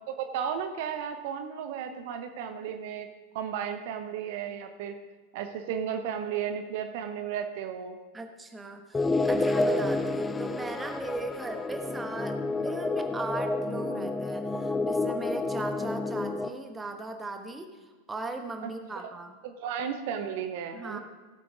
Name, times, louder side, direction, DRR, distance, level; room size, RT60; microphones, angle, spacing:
voice 1, 0.1-3.1 3.3-5.0 5.3-8.0 18.6-18.7 19.0-19.1 19.4-21.0, right 8 dB, 50° right, 7 dB, 0.8 m, -34 dB
voice 2, 8.1-19.3 20.7-21.0, right 2 dB, 15° right, 6 dB, 1.1 m, -38 dB
sound 1, 8.9-16.5, left 2 dB, 15° left, 0.5 m, -29 dB
17.0 x 8.4 x 3.6 m, 1.3 s
figure-of-eight pair, 90°, 0 cm